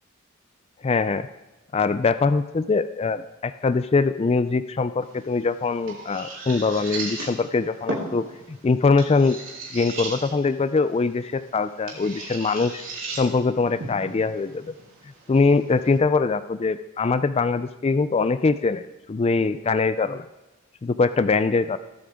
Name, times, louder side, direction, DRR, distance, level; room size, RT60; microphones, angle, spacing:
voice 1, 0.8-1.3 1.7-9.4 9.7-12.8 13.2-14.7 15.3-18.8 19.1-20.3 20.8-21.8, left 4 dB, 30° left, 12 dB, 0.4 m, -22 dB
sound 1, 5.0-16.0, right 2 dB, 65° right, 3.7 m, -37 dB
22.0 x 8.8 x 3.6 m, 1.1 s
head